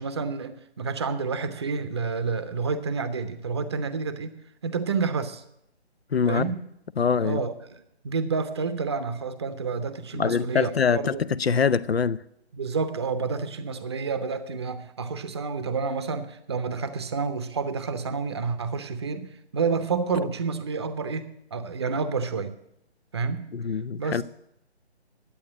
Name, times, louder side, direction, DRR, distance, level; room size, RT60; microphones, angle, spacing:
voice 1, 0.0-4.3 4.6-5.4 6.3-6.6 7.0-11.2 12.5-22.5 23.1-23.5 24.0-24.2, right 5 dB, 25° right, 0.8 m, -29 dB
voice 2, 6.1-6.5 7.0-7.4 10.1-12.2 23.5-24.2, left 6 dB, 65° left, 0.7 m, -24 dB
11.0 x 8.6 x 8.7 m
figure-of-eight pair, 155°, 33 cm